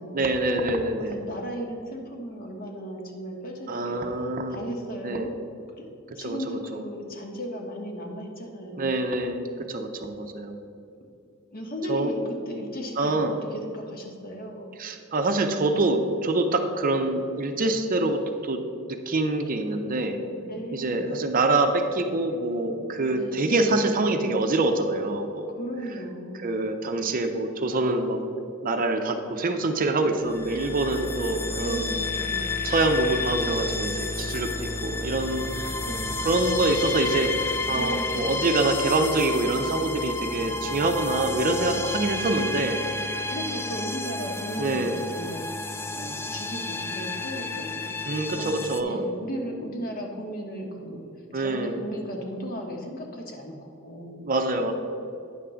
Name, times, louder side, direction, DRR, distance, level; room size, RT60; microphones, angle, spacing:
voice 1, 0.1-1.2 3.7-4.6 5.0-5.3 6.2-6.8 8.8-10.6 11.9-12.1 13.0-13.3 14.8-18.6 18.9-20.2 20.7-25.5 26.4-28.2 28.6-31.9 32.6-34.5 34.8-35.7 36.2-37.3 37.7-42.8 44.6-45.0 48.0-49.1 51.3-51.8 54.2-54.7, right 2 dB, 40° right, 5 dB, 0.6 m, -25 dB
voice 2, 1.1-4.0 4.5-5.3 5.8-5.9 6.1-9.0 11.5-14.7 20.4-21.1 22.7-22.8 23.1-23.6 25.5-26.6 31.6-32.5 35.8-36.2 37.7-38.2 43.2-47.9 48.3-51.1 51.3-54.2, equal, 45° left, 1 dB, 1.2 m, -36 dB
sound 1, 30.2-48.8, left 3 dB, 10° left, 0.3 m, -31 dB
9.3 x 3.7 x 6.8 m, 2.5 s
head